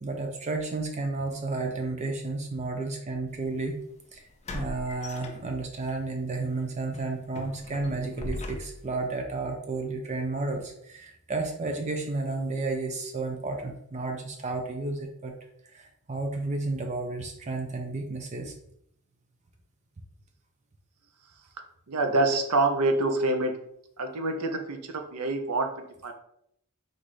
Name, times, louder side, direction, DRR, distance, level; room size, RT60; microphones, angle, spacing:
voice 1, 0.0-3.8 4.1-4.2 4.5-15.3 15.7-18.5, right 3 dB, 30° right, 3 dB, 0.5 m, -32 dB
sound 1, 3.3-3.5 4.4-5.9 6.3-6.5 6.9-9.0, left 2 dB, 30° left, 0.5 m, -39 dB
voice 2, 21.9-23.5 24.0-26.1, right 2 dB, 85° right, 4 dB, 0.7 m, -26 dB
4.1 x 2.6 x 4.6 m, 0.73 s
head